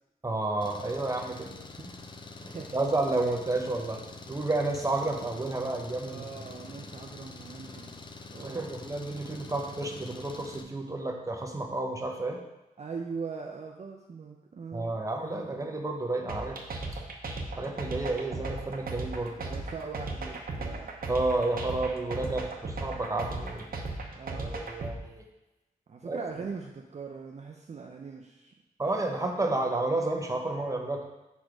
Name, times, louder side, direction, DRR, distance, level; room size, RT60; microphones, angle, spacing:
voice 1, 0.2-1.9 2.4-4.0 4.3-6.2 8.4-12.4 14.7-16.6 17.5-19.4 21.1-23.7 24.4-25.2 26.0-26.2 28.8-31.0, right 2 dB, 20° right, 2 dB, 0.8 m, -31 dB
Engine, 0.6-10.6, left 3 dB, 30° left, 0.5 m, -46 dB
voice 2, 2.4-2.8 6.1-7.9 8.3-8.7 12.8-15.7 19.4-21.0 24.1-24.7 25.9-28.5 29.4-29.8, right 5 dB, 50° right, 1 dB, 0.5 m, -41 dB
sound 1, 16.3-24.9, right 3 dB, 70° right, 0.8 m, -36 dB
4.6 x 4.3 x 4.8 m, 1.0 s
wide cardioid pair, 90°, 15 cm